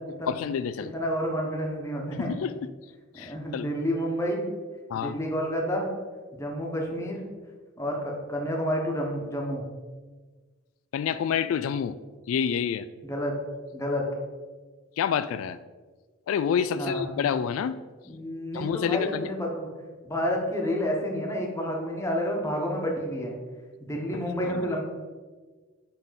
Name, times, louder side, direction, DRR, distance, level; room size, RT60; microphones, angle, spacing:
voice 1, 0.3-0.9 2.2-2.5 3.2-3.7 4.9-5.2 10.9-12.0 12.3-12.9 15.0-15.6 16.3-17.8 18.5-19.3 24.1-24.7, left 7 dB, 85° left, 13 dB, 0.3 m, -28 dB
voice 2, 0.8-2.4 3.1-4.4 4.9-5.9 6.3-7.2 7.8-9.6 13.0-13.3 13.7-14.0 16.8-17.0 18.0-19.7 20.1-23.4 23.8-24.8, equal, 15° left, 0 dB, 1.2 m, -29 dB
9.6 x 3.7 x 4.1 m, 1.4 s
head